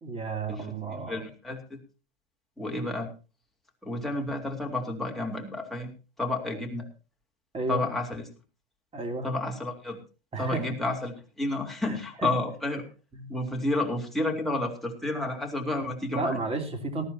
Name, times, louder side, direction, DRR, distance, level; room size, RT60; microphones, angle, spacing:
voice 1, 0.0-1.3 6.5-6.6 7.5-7.8 8.9-9.3 10.3-10.7 11.8-12.0 12.2-12.3 13.2-13.3 16.1-17.0, right 3 dB, 20° right, 5 dB, 3.3 m, -32 dB
voice 2, 0.9-1.8 2.6-3.1 3.8-6.8 7.7-8.2 9.2-10.0 10.4-12.8 13.3-16.4, left 2 dB, ahead, 0 dB, 3.6 m, -31 dB
18.5 x 13.5 x 2.9 m, 0.33 s
hypercardioid pair, 100°, 30 cm